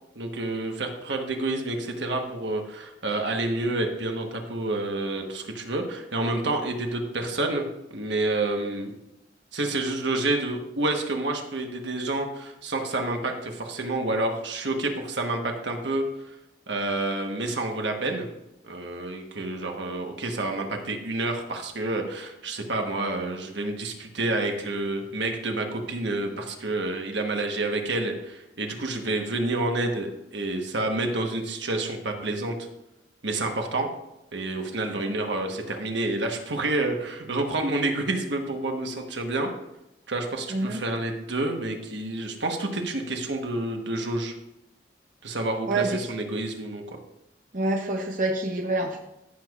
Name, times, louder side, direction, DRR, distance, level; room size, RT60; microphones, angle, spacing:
voice 1, 0.1-8.9 9.5-16.0 16.7-18.3 18.6-32.5 33.2-33.9 34.3-39.5 40.1-44.3 45.2-47.0, right 2 dB, 80° right, 3 dB, 1.2 m, -29 dB
voice 2, 40.5-40.8 45.7-46.0 47.5-49.0, right 2 dB, 45° right, 2 dB, 0.7 m, -27 dB
14.5 x 6.3 x 2.4 m, 0.90 s
head